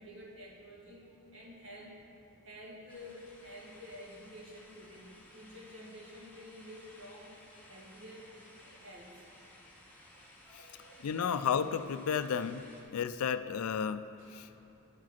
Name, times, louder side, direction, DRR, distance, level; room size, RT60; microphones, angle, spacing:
voice 1, 0.0-9.3 10.1-11.1 14.2-14.5, equal, 60° right, -3 dB, 1.6 m, -51 dB
sound 1, 2.9-12.8, left 1 dB, 5° left, 1.4 m, -57 dB
voice 2, 11.0-12.6 12.9-14.0 14.3-14.6, left 7 dB, 75° left, 11 dB, 0.4 m, -32 dB
10.5 x 4.9 x 5.8 m, 3.0 s
head